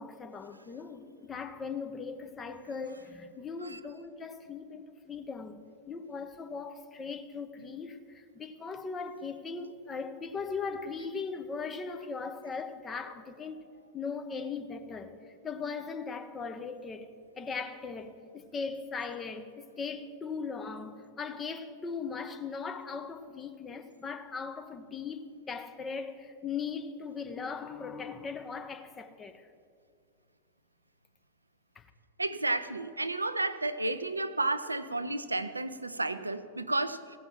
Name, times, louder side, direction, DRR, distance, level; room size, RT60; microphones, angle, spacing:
voice 1, 0.0-5.6 5.9-13.7 13.9-15.2 15.4-17.1 17.4-29.5 31.8-31.9, left 5 dB, 20° left, 0.8 m, -39 dB
voice 2, 32.2-37.2, right 2 dB, 80° right, 0.5 m, -32 dB
16.0 x 5.7 x 7.5 m
figure-of-eight pair, 90°, 0 cm